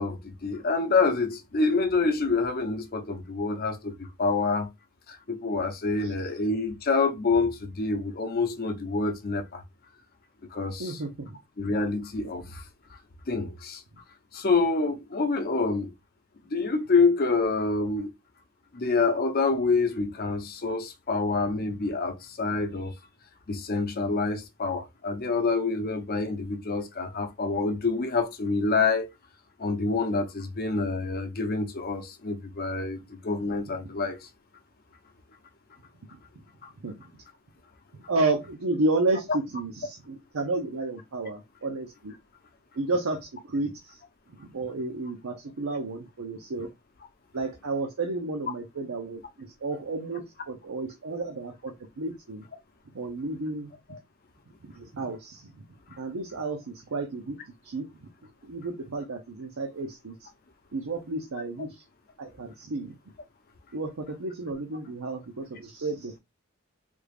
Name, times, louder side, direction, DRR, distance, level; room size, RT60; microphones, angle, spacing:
voice 1, 0.0-4.7 5.1-9.6 10.5-11.0 11.6-12.6 13.3-13.8 14.3-15.9 16.5-18.1 18.7-22.9 23.5-29.1 29.6-34.2 36.6-36.7 53.9-54.0, left 3 dB, 45° left, 0.7 m, -27 dB
voice 2, 10.8-11.4 36.8-36.9 38.1-42.2 42.8-44.0 44.4-46.7 47.3-52.5 52.9-53.7 54.6-55.5 56.0-57.4 57.6-57.9 58.5-60.3 60.7-61.8 62.2-62.9 63.7-66.2, right 2 dB, 75° right, 0.6 m, -31 dB
3.4 x 2.4 x 3.4 m
head